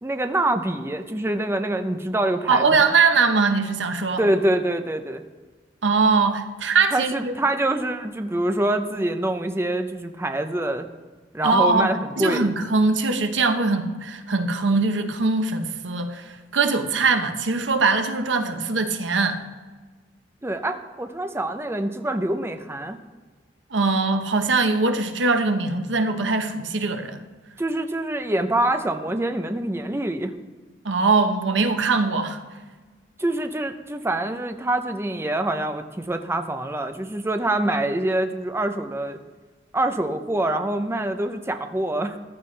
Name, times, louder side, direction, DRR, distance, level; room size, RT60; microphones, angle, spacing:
voice 1, 0.0-2.8 4.2-5.2 6.9-10.9 11.3-12.6 20.4-23.0 27.6-30.3 33.2-39.2 39.7-42.2, right 1 dB, 15° right, 7 dB, 0.6 m, -25 dB
voice 2, 2.5-4.2 5.8-7.3 11.4-19.4 23.7-27.2 30.8-32.4, right 4 dB, 90° right, 7 dB, 1.0 m, -21 dB
14.5 x 11.5 x 3.3 m, 1.4 s
head